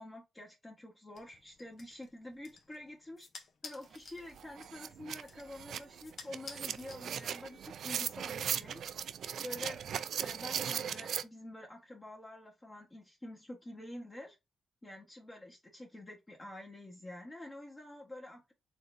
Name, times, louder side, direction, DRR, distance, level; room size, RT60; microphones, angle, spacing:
voice 1, 0.0-3.3 3.6-8.8 9.4-9.8 10.2-14.4 14.8-18.5, left 1 dB, 25° left, 1.2 m, -48 dB
sound 1, 1.1-7.6, left 4 dB, 60° left, 0.7 m, -54 dB
sound 2, 3.9-4.0 4.3-11.2, right 8 dB, 75° right, 0.4 m, -38 dB
4.0 x 3.2 x 2.5 m
cardioid pair, 65°, 0 cm